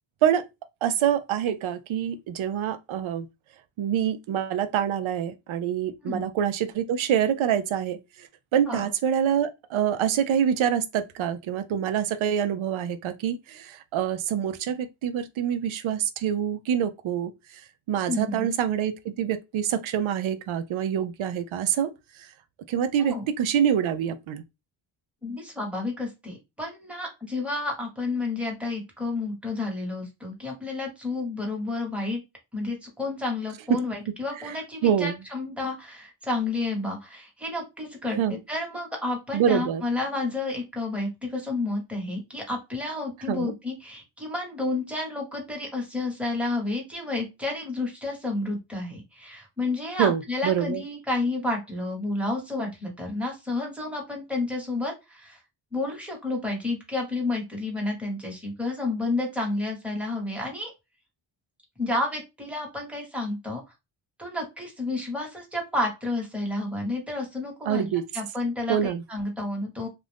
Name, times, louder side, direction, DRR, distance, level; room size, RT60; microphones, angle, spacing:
voice 1, 0.8-3.3 3.8-17.3 17.9-21.9 22.2-22.3 22.7-24.4 33.7-33.8 34.4-34.6 34.8-35.2 38.2-38.4 39.3-39.8 43.3-43.5 50.0-50.8 67.7-68.1 68.7-69.0, right 9 dB, 75° right, 0.6 m, -26 dB
voice 2, 18.1-18.4 23.0-23.3 25.2-32.2 32.5-55.4 55.7-60.7 61.8-63.6 64.2-69.9, left 2 dB, 5° right, 1.2 m, -30 dB
2.5 x 2.5 x 3.4 m
cardioid pair, 100°, 48 cm